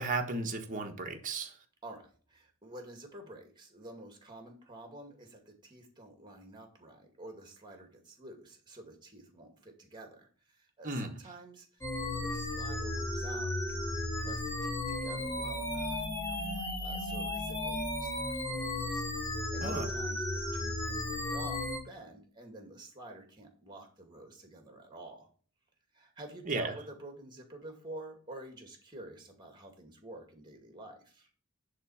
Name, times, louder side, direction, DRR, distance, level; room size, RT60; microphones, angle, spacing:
voice 1, 0.0-1.5 10.8-11.1 19.6-19.9 26.5-26.7, right 3 dB, 35° right, 2 dB, 1.4 m, -34 dB
voice 2, 1.8-13.9 14.2-19.1 19.5-25.3 25.9-31.3, right 1 dB, 20° right, 4 dB, 2.2 m, -49 dB
sound 1, 11.8-21.8, left 1 dB, 15° left, 1.9 m, -34 dB
10.5 x 3.8 x 7.1 m, 0.42 s
head